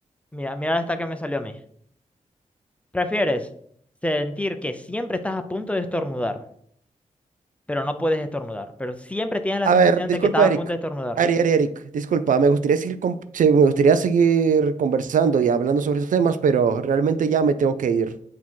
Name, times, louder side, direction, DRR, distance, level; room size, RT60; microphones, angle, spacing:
voice 1, 0.3-1.6 2.9-3.5 4.0-6.4 7.7-11.2, left 1 dB, 10° left, 8 dB, 0.5 m, -26 dB
voice 2, 9.6-10.6 11.2-18.1, right 5 dB, 85° right, 12 dB, 0.4 m, -19 dB
8.2 x 2.8 x 4.5 m, 0.65 s
wide cardioid pair, 130°, 13 cm